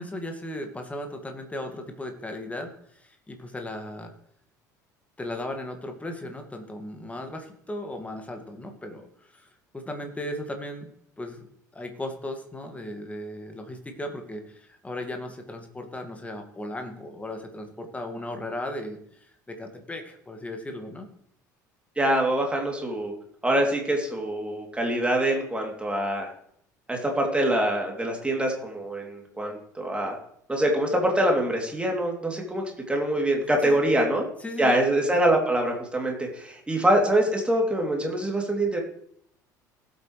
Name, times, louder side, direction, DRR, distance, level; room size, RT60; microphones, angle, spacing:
voice 1, 0.0-4.1 5.2-9.5 9.7-10.9 11.2-21.1 33.6-33.8 34.4-34.8, left 1 dB, 15° left, 5 dB, 2.0 m, -36 dB
voice 2, 22.0-23.1 23.4-26.3 26.9-30.2 30.5-34.2 34.6-38.8, right 1 dB, 10° right, 1 dB, 3.0 m, -24 dB
18.5 x 8.2 x 3.3 m, 0.69 s
figure-of-eight pair, 60°, 10 cm